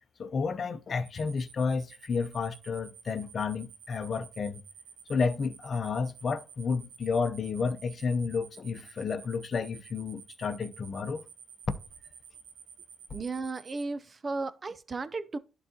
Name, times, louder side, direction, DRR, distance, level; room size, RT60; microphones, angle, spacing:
voice 1, 0.2-4.6 5.1-11.2 11.7-11.8, left 5 dB, 45° left, 0.7 m, -31 dB
sound 1, 1.0-13.8, right 7 dB, 70° right, 0.8 m, -51 dB
voice 2, 13.1-15.4, right 3 dB, 35° right, 0.6 m, -35 dB
11.0 x 4.0 x 2.9 m
cardioid pair, 90°, 0 cm